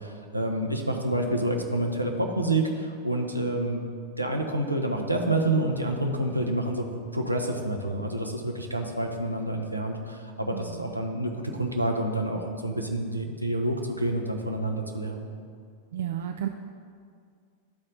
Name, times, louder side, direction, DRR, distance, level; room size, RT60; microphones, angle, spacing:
voice 1, 0.0-3.8 4.2-6.8 7.1-15.3, right 1 dB, 85° right, 2 dB, 0.7 m, -28 dB
voice 2, 10.5-10.9 15.9-16.5, right 10 dB, 60° right, 5 dB, 0.3 m, -32 dB
11.0 x 4.2 x 4.0 m, 2.2 s
figure-of-eight pair, 90°, 0 cm